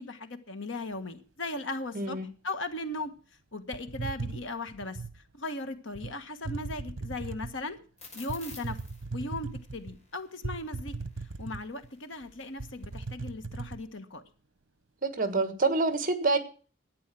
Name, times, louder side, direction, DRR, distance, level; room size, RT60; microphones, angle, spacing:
voice 1, 0.0-2.2 2.4-3.1 3.5-7.8 8.1-8.8 9.1-14.2, left 2 dB, 70° left, 9 dB, 1.5 m, -38 dB
voice 2, 1.9-2.3 15.0-16.4, right 3 dB, 45° right, 11 dB, 1.5 m, -27 dB
sound 1, 3.7-5.2 5.9-6.1 6.4-7.6 8.3-9.9 10.4-11.9 12.2-12.3 12.6-13.8, right 3 dB, 80° right, 0.9 m, -38 dB
sound 2, 8.0-13.1, left 3 dB, 35° left, 5.5 m, -51 dB
12.0 x 9.2 x 7.6 m, 0.39 s
head